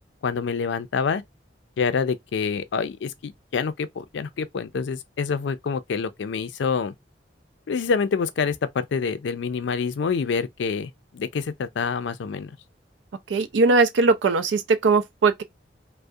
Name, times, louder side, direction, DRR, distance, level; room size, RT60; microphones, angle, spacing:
voice 1, 0.2-1.2 1.8-6.9 7.7-12.5, left 5 dB, 80° left, 0.4 m, -27 dB
voice 2, 13.3-15.4, right 3 dB, 80° right, 0.4 m, -20 dB
2.3 x 2.1 x 2.6 m
head